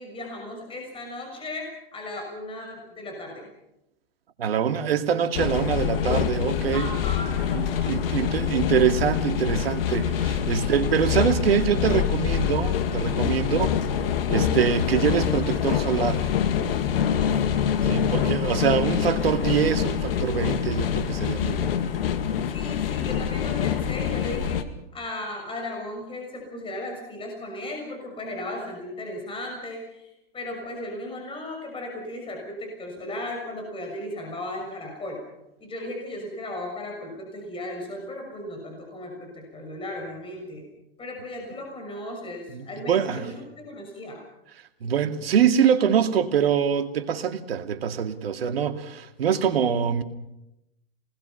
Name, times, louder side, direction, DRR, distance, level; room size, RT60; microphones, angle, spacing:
voice 1, 0.0-3.5 6.7-8.3 10.5-11.2 13.3-13.7 17.1-17.6 18.7-18.8 22.5-24.6 24.9-35.2 35.6-40.6 41.0-44.2, left 1 dB, 15° left, 6.5 m, -36 dB
voice 2, 4.4-6.9 7.5-13.7 14.3-16.3 17.8-21.7 42.5-43.3 44.8-50.0, right 8 dB, 80° right, 2.3 m, -24 dB
sound 1, 5.3-24.6, left 8 dB, 70° left, 2.1 m, -25 dB
28.0 x 20.0 x 5.7 m
hypercardioid pair, 120°, 30 cm